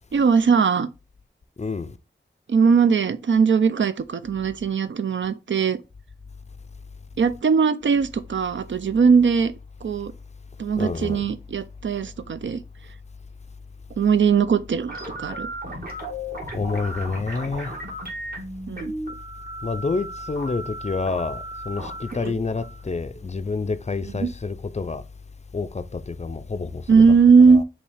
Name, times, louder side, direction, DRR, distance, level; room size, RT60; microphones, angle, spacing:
voice 1, 0.1-0.9 2.5-5.8 7.2-9.5 9.8-10.1 10.6-12.6 14.0-15.5 18.7-18.9 22.2-22.3 24.1-24.3 26.9-27.6, right 5 dB, 65° right, 0.4 m, -19 dB
voice 2, 1.6-1.9 10.8-11.2 16.5-17.7 19.6-25.0 25.5-27.0 27.5-27.6, left 4 dB, 35° left, 0.4 m, -28 dB
sound 1, 14.9-23.8, right 1 dB, 45° right, 1.7 m, -36 dB
5.3 x 2.8 x 3.2 m
wide cardioid pair, 65°, 21 cm